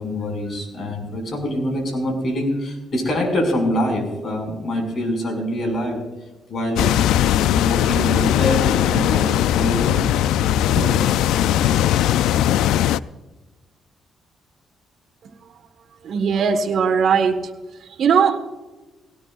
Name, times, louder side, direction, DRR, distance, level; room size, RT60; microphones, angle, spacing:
voice 1, 0.0-6.0 6.5-6.9 7.5-10.0 10.4-10.9, left 1 dB, 50° left, 3 dB, 5.7 m, -25 dB
sound 1, 6.8-13.0, left 11 dB, 90° left, 0.3 m, -19 dB
voice 2, 15.2-15.6 16.0-17.5 17.8-18.4, right 6 dB, 60° right, 3 dB, 1.4 m, -20 dB
19.5 x 17.5 x 2.5 m, 1.1 s
cardioid pair, 90°, 0 cm